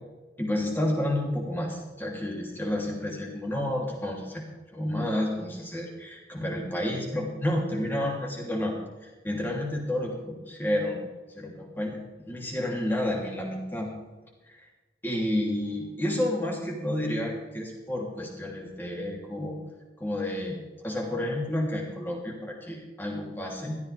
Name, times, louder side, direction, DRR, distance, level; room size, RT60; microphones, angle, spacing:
voice 1, 0.4-4.5 4.7-8.7 9.0-11.0 11.3-13.9 14.5-14.6 15.0-19.6 20.0-20.6 20.8-23.8, left 1 dB, 10° left, -1 dB, 3.0 m, -30 dB
16.5 x 13.5 x 3.4 m, 1.2 s
head